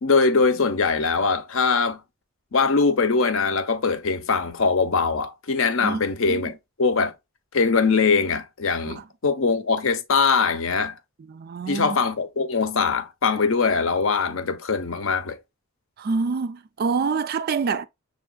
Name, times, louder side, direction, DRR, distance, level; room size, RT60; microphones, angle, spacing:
voice 1, 0.0-2.0 2.5-6.5 6.8-7.1 7.5-11.0 11.7-15.4, left 4 dB, 60° left, 0.7 m, -22 dB
voice 2, 5.8-6.5 8.9-9.0 11.3-12.0 16.0-17.8, right 5 dB, 45° right, 0.3 m, -27 dB
6.1 x 3.3 x 2.3 m
head